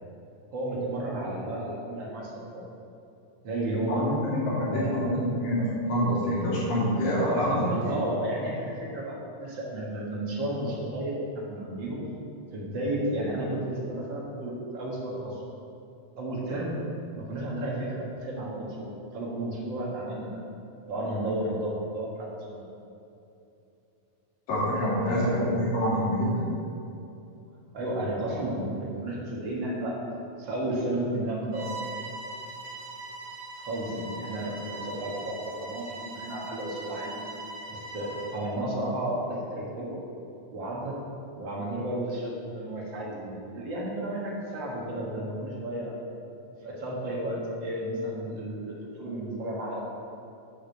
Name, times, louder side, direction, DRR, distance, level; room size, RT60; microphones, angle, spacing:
voice 1, 0.5-2.6 3.4-4.0 4.5-5.2 7.2-12.0 12.5-15.4 16.2-16.8 17.1-20.4 20.9-22.7 25.1-25.4 27.7-29.9 30.4-31.7 33.6-37.2 37.7-40.0 40.5-40.9 41.4-45.9 46.6-49.8, right 1 dB, 45° right, -4 dB, 1.8 m, -32 dB
voice 2, 3.9-8.0 24.5-26.5 33.9-34.0, equal, 80° left, -8 dB, 4.4 m, -27 dB
Bowed string instrument, 31.5-38.5, right 2 dB, 70° right, 2.4 m, -40 dB
8.3 x 6.1 x 6.6 m, 2.8 s
omnidirectional pair, 4.0 m